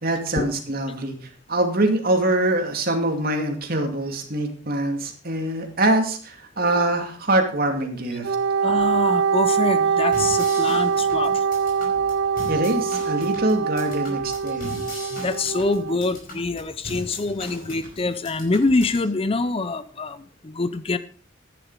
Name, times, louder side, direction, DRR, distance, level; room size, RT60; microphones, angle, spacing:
voice 1, 0.0-1.1 1.5-8.4 12.5-15.0, right 1 dB, 45° right, 4 dB, 2.3 m, -24 dB
Wind instrument woodwind instrument, 8.2-16.0, right 6 dB, 65° right, 0.4 m, -23 dB
voice 2, 8.6-11.4 15.1-21.0, left 3 dB, 30° left, 13 dB, 0.5 m, -25 dB
sound 1, 10.1-19.1, left 1 dB, 45° left, 5.0 m, -39 dB
11.0 x 10.5 x 4.8 m, 0.42 s
head